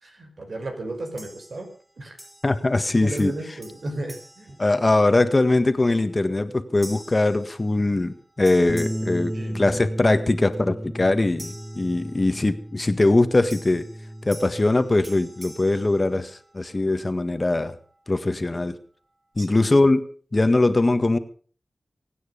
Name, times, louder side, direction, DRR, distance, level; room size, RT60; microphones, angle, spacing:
voice 1, 0.0-1.7 2.0-2.2 3.0-4.6 9.3-9.8 19.4-19.8, right 2 dB, 70° right, 4 dB, 5.1 m, -34 dB
sound 1, 1.2-1.8 2.2-2.9 3.2-5.3 5.8-6.1 6.8-8.1 8.4-10.1 11.4-12.6 13.5-16.7, right 1 dB, 25° right, 5.7 m, -46 dB
voice 2, 2.4-3.3 4.6-13.8 14.2-17.8 18.1-18.8 19.4-20.0 20.3-21.2, left 2 dB, 40° left, 10 dB, 1.6 m, -21 dB
Bass guitar, 8.7-14.9, equal, ahead, 2.5 m, -34 dB
24.0 x 9.5 x 5.4 m, 0.43 s
cardioid pair, 50°, 0 cm